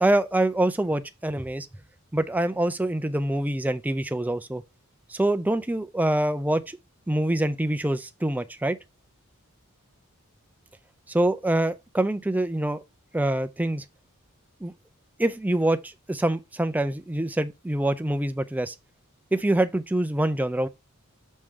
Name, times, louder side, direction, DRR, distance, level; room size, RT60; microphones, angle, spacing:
voice 1, 0.0-1.7 2.1-4.6 5.1-6.8 7.1-8.8 11.1-12.8 13.1-13.8 14.6-14.7 15.2-18.7 19.3-20.7, right 1 dB, 5° right, 0.4 m, -25 dB
6.3 x 3.7 x 4.4 m
head